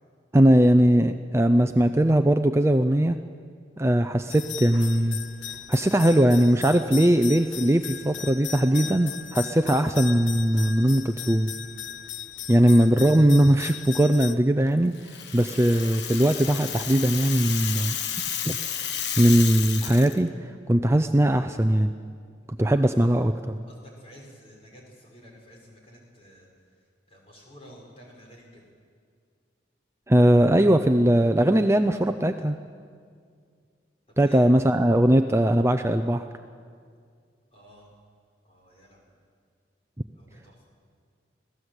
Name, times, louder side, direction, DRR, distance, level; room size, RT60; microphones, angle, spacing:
voice 1, 0.3-3.2 3.8-5.2 5.7-11.5 12.5-14.9 15.3-18.0 18.4-18.6 19.2-21.9 22.6-23.6 30.1-32.6 34.2-36.3, right 1 dB, 15° right, 7 dB, 0.5 m, -20 dB
sound 1, 4.3-14.4, left 10 dB, 85° left, 0.7 m, -37 dB
Rattle (instrument), 14.9-20.2, left 8 dB, 65° left, 1.2 m, -32 dB
voice 2, 23.7-28.6 34.2-34.5 37.5-37.9 38.4-39.0 40.1-40.6, equal, 30° left, -1 dB, 5.8 m, -51 dB
25.5 x 17.0 x 8.1 m, 2.1 s
head